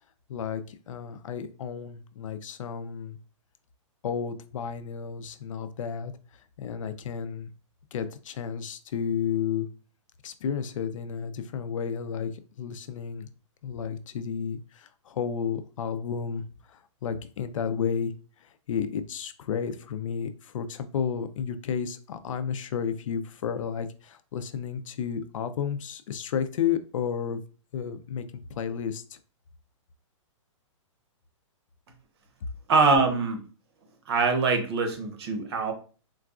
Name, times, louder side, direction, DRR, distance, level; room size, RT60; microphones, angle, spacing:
voice 1, 0.3-3.2 4.0-7.5 7.9-9.7 10.2-12.3 12.6-13.3 13.6-18.1 18.4-27.4 27.7-28.2 28.5-29.2, left 7 dB, 80° left, 11 dB, 0.5 m, -32 dB
voice 2, 32.7-33.4 34.1-35.7, right 4 dB, 50° right, 5 dB, 0.8 m, -23 dB
3.8 x 2.3 x 2.4 m, 0.37 s
hypercardioid pair, 160°, 17 cm